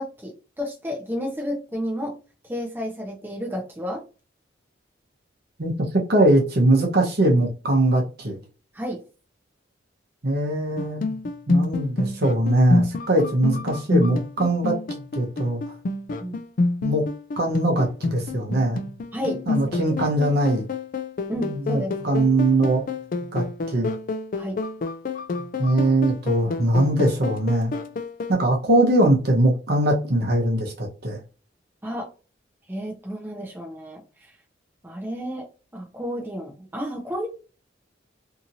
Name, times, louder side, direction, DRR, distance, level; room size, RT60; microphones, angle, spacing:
voice 1, 0.0-2.2 2.5-4.0 8.7-9.0 16.2-16.4 19.1-19.8 21.3-21.9 24.4-24.6 31.8-32.1 32.7-34.0 34.8-35.5 35.7-37.3, equal, 10° right, -2 dB, 0.7 m, -31 dB
voice 2, 6.1-8.4 10.2-11.0 11.5-14.8 15.1-15.6 16.8-17.1 17.4-18.8 19.5-20.7 21.3-22.8 23.3-23.9 25.6-27.7 28.3-31.2, right 1 dB, 55° right, 1 dB, 0.9 m, -21 dB
sound 1, 10.8-28.3, left 3 dB, 45° left, 0.4 m, -28 dB
2.8 x 2.6 x 2.7 m, 0.33 s
head